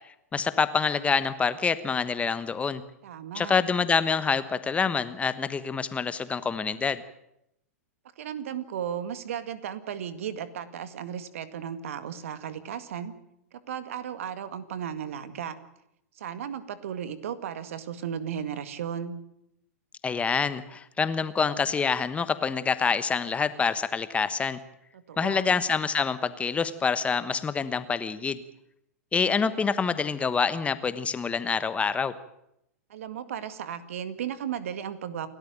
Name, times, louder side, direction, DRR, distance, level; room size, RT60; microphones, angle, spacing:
voice 1, 0.3-2.8 3.3-7.0 20.0-24.6 25.2-28.4 29.1-32.1, left 5 dB, 15° left, 14 dB, 1.1 m, -26 dB
voice 2, 3.0-3.5 8.2-13.1 13.5-15.6 16.2-19.1 24.9-25.6 32.9-35.3, right 9 dB, 60° right, 13 dB, 1.9 m, -35 dB
28.5 x 13.0 x 9.0 m, 0.80 s
figure-of-eight pair, 100°, 8 cm